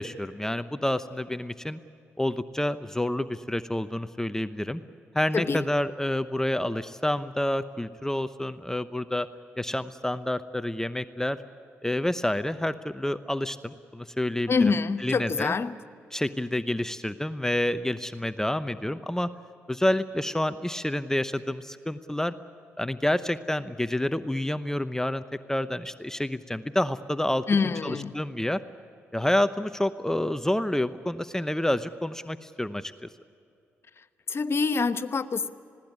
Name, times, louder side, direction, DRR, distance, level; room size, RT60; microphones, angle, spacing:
voice 1, 0.0-1.8 2.2-4.8 5.1-9.3 9.6-11.4 11.8-14.7 15.0-15.5 16.1-19.3 19.7-22.3 22.8-28.6 29.1-33.1, left 1 dB, 10° left, 12 dB, 0.8 m, -28 dB
voice 2, 14.5-15.8 27.5-28.2 34.3-35.5, left 4 dB, 45° left, 12 dB, 1.0 m, -25 dB
20.5 x 17.0 x 9.6 m, 2.5 s
supercardioid pair, 45°, 6 cm